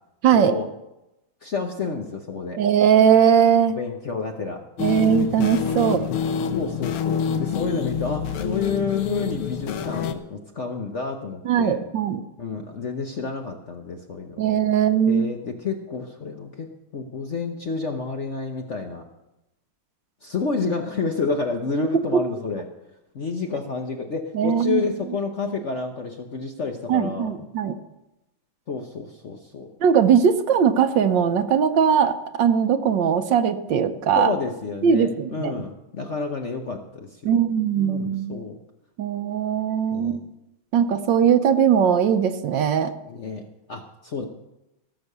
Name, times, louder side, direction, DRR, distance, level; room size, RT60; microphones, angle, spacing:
voice 1, 0.3-0.7 1.4-2.6 3.8-4.6 5.7-6.1 6.5-11.8 12.4-14.6 15.1-16.7 16.9-19.1 20.2-22.7 23.1-27.3 28.7-29.7 34.1-37.4 37.8-38.6 39.9-40.2 43.0-44.3, left 4 dB, 50° left, 4 dB, 0.9 m, -29 dB
voice 2, 2.6-3.8 4.8-6.0 11.4-12.2 14.4-15.3 22.1-22.2 24.3-24.8 26.9-27.7 29.8-34.3 34.8-35.5 37.2-38.4 39.0-40.2 40.7-42.9, right 8 dB, 70° right, 9 dB, 1.3 m, -20 dB
sound 1, 4.8-10.1, left 7 dB, 90° left, 1.8 m, -27 dB
17.0 x 7.0 x 6.7 m, 0.92 s
omnidirectional pair, 2.3 m